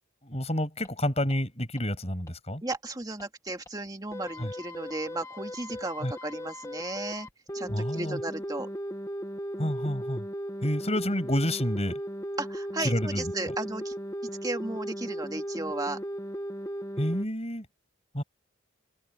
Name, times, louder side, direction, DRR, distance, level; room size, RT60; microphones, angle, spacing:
voice 1, 0.2-2.6 4.4-4.5 6.0-6.1 7.7-8.2 9.6-10.2 10.6-12.0 12.8-13.2 17.0-17.6 18.1-18.2, left 1 dB, 30° left, 6.6 m, -29 dB
sound 1, 0.8-0.9 1.3-1.4 1.8-1.9 2.3-2.4 2.7-2.8 3.2-3.3 3.7-3.8 4.1-17.2, equal, 15° left, 1.6 m, -37 dB
voice 2, 2.6-7.3 7.5-8.7 12.4-13.9 14.4-16.0, right 2 dB, 20° right, 2.0 m, -35 dB
head